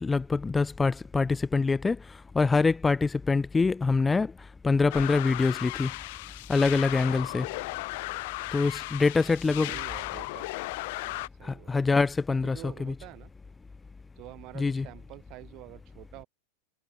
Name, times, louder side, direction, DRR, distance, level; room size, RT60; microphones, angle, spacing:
voice 1, 0.0-5.9 6.5-7.5 8.5-9.7 11.4-12.9 14.6-14.8, left 4 dB, 10° left, 0.7 m, -25 dB
sound 1, 4.9-11.3, left 23 dB, 50° left, 0.4 m, -36 dB
voice 2, 9.3-10.5 11.0-11.8 12.4-13.3 14.2-16.3, right 21 dB, 40° right, 4.3 m, -47 dB
figure-of-eight pair, 90°, 0 cm